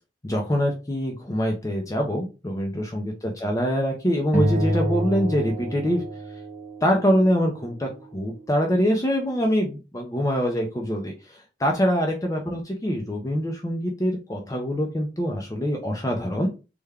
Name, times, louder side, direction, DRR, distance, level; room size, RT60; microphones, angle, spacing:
voice 1, 0.2-6.0 6.8-16.5, equal, 20° left, 1 dB, 0.5 m, -24 dB
sound 1, 4.3-7.0, equal, 10° right, 0.9 m, -27 dB
3.4 x 2.2 x 3.4 m, 0.30 s
head